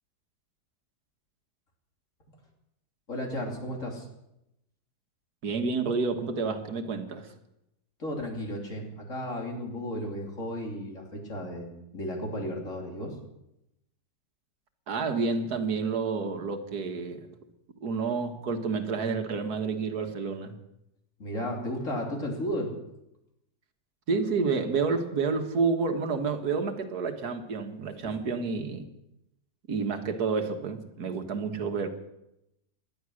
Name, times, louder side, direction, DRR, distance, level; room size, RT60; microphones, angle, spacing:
voice 1, 3.1-4.1 8.0-13.1 21.2-22.7, equal, 45° left, 0 dB, 3.5 m, -34 dB
voice 2, 5.4-7.3 14.9-17.3 17.8-20.6 24.1-28.8 29.7-31.9, right 4 dB, 65° right, 6 dB, 1.9 m, -29 dB
18.5 x 12.0 x 6.4 m, 0.86 s
omnidirectional pair, 1.8 m